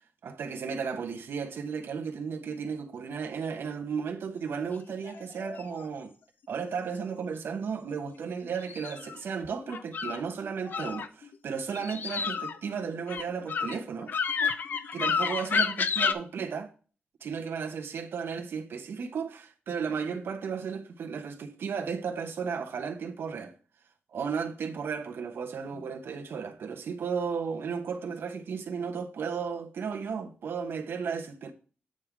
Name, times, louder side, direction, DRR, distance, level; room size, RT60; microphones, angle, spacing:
voice 1, 0.2-6.1 6.5-14.1 14.9-16.7 17.2-23.5 24.1-31.5, right 6 dB, 70° right, 1.2 m, -34 dB
sound 1, 4.9-5.8 8.6-10.2 10.7-11.3 11.7-16.1, left 6 dB, 55° left, 0.5 m, -30 dB
8.8 x 3.8 x 4.6 m
wide cardioid pair, 165°, 4 cm